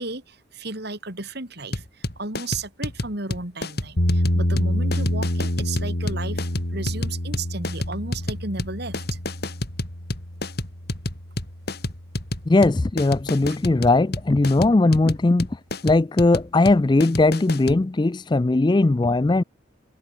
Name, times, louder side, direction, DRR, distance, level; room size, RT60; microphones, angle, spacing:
voice 1, 0.0-1.8 2.2-6.4 6.7-9.2, right 3 dB, 50° right, 4.1 m, -33 dB
sound 1, 1.7-17.8, left 1 dB, 50° left, 4.6 m, -30 dB
sound 2, 4.0-12.1, equal, 80° left, 5.5 m, -27 dB
voice 2, 12.5-15.5 15.8-19.4, left 2 dB, 20° left, 0.4 m, -19 dB
head